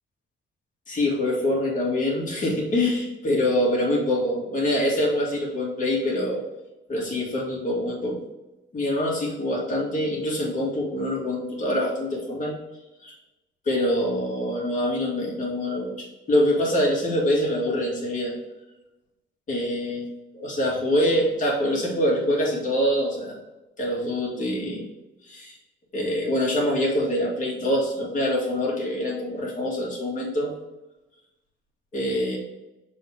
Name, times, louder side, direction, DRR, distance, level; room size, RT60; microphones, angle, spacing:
voice 1, 0.9-6.4 6.9-8.2 8.7-12.5 13.0-13.1 13.7-18.3 19.5-20.1 20.3-23.4 23.8-24.9 25.3-25.5 25.9-30.5 31.9-32.4, left 1 dB, 40° left, -3 dB, 2.1 m, -25 dB
6.9 x 4.1 x 3.5 m, 1.0 s
cardioid pair, 145°, 21 cm